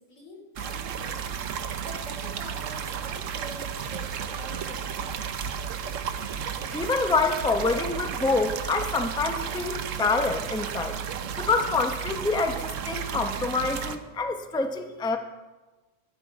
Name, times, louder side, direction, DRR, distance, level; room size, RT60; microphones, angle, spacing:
voice 1, 0.1-1.3 1.8-5.2, equal, 85° left, 0 dB, 3.4 m, -44 dB
sound 1, 0.6-14.0, right 7 dB, 90° right, 1.1 m, -33 dB
voice 2, 6.7-11.0 11.4-15.2, left 3 dB, 5° left, 6 dB, 0.6 m, -26 dB
12.5 x 11.5 x 4.8 m, 1.2 s
omnidirectional pair, 1.3 m